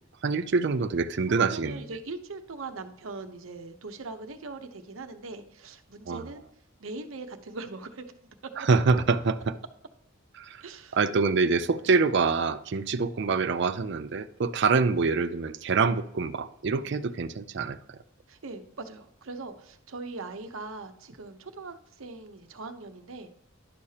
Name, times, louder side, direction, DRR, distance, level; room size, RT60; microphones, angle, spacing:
voice 1, 0.2-1.8 6.1-6.2 8.6-9.6 10.4-10.6 10.9-17.8, right 4 dB, 55° right, 0.5 m, -25 dB
voice 2, 1.3-6.4 6.8-8.3 10.6-11.0 11.8-11.9 16.8-16.9 18.3-23.3, right 3 dB, 75° right, 0.8 m, -41 dB
11.0 x 6.5 x 2.8 m
head